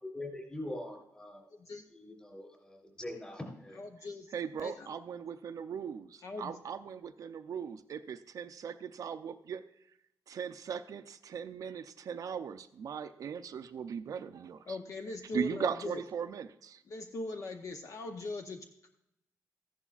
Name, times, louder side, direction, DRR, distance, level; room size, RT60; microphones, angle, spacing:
voice 1, 0.0-1.5 1.9-3.8, left 1 dB, 15° left, 1 dB, 3.5 m, -43 dB
voice 2, 1.5-1.9 3.7-4.9 6.2-6.6 14.7-16.0 16.9-18.9, left 3 dB, 50° left, 5 dB, 0.7 m, -41 dB
voice 3, 4.3-9.6 10.3-14.8 15.3-16.8, right 7 dB, 60° right, 9 dB, 0.5 m, -39 dB
14.5 x 11.0 x 2.4 m, 0.81 s
wide cardioid pair, 150°, 7 cm